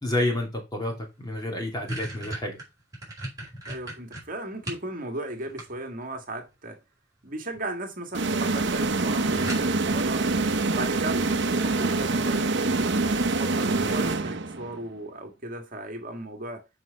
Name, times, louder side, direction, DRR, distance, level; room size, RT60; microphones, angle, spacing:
voice 1, 0.0-2.6, left 1 dB, 20° left, 2.8 m, -29 dB
sound 1, 1.0-1.1 1.4-4.9 5.3-6.2 7.3-7.7 8.0-8.1 8.4-8.5 8.8-8.9 9.5-10.0, right 1 dB, 15° right, 5.2 m, -37 dB
voice 2, 3.7-6.8 7.2-10.2 10.7-16.7, right 1 dB, 45° right, 1.9 m, -36 dB
sound 2, 8.1-14.8, right 3 dB, 60° right, 0.8 m, -25 dB
7.9 x 5.5 x 5.2 m
head